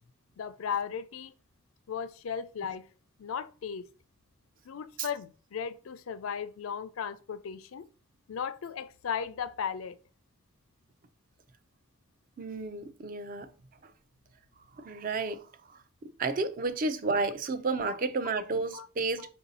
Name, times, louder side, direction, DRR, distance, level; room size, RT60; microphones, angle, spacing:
voice 1, 0.4-1.3 1.9-2.9 3.2-3.9 4.6-7.8 8.3-10.0 18.7-18.9 19.2-19.3, left 7 dB, 90° left, 0.4 m, -36 dB
voice 2, 12.4-13.5 14.8-15.4 15.7-15.8 16.2-19.3, right 3 dB, 40° right, 0.4 m, -31 dB
4.6 x 2.7 x 4.0 m
head